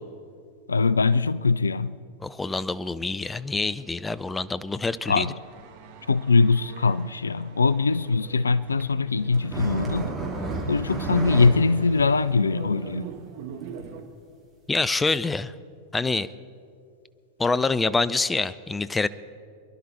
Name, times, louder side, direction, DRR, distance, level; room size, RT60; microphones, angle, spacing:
voice 1, 0.7-1.9 5.1-5.4 6.1-10.1 10.7-13.1, left 4 dB, 75° left, 0.4 m, -22 dB
voice 2, 2.2-5.3 14.7-15.5 15.9-16.3 17.4-19.1, left 3 dB, 10° left, 0.4 m, -26 dB
sound 1, 5.1-14.0, right 7 dB, 50° right, 1.3 m, -44 dB
sound 2, 9.3-11.5 11.9-12.0 12.3-12.4 13.0-13.1 13.8-13.9 14.7-14.8, right 3 dB, 15° right, 3.3 m, -31 dB
24.5 x 11.0 x 4.4 m
figure-of-eight pair, 90°, 0 cm